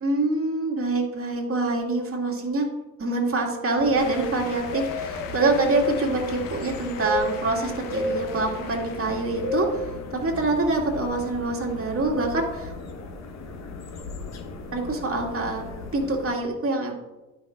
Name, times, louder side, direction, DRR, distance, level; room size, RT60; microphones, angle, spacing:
voice 1, 0.0-2.7 3.0-9.8 10.1-12.7 14.7-15.6 15.9-16.9, right 2 dB, 40° right, 0 dB, 2.1 m, -25 dB
sound 1, 3.8-16.4, left 2 dB, 50° left, 1.1 m, -34 dB
sound 2, 4.0-10.7, left 7 dB, 75° left, 0.9 m, -42 dB
11.0 x 5.7 x 2.4 m, 1.1 s
hypercardioid pair, 55°, 34 cm